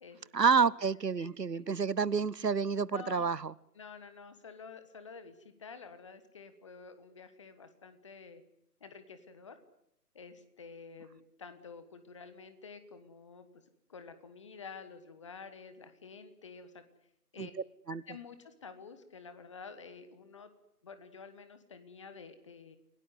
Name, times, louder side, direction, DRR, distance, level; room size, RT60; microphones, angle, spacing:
voice 1, 0.3-3.5 17.4-17.5 17.9-18.0, right 5 dB, 80° right, 22 dB, 1.0 m, -29 dB
voice 2, 1.2-1.6 2.9-3.3 3.7-8.4 8.8-9.6 10.1-13.5 13.9-16.8 17.3-17.5 17.9-20.5 20.8-22.8, left 5 dB, 20° left, 11 dB, 1.3 m, -50 dB
28.5 x 17.5 x 9.6 m, 0.78 s
figure-of-eight pair, 150°, 48 cm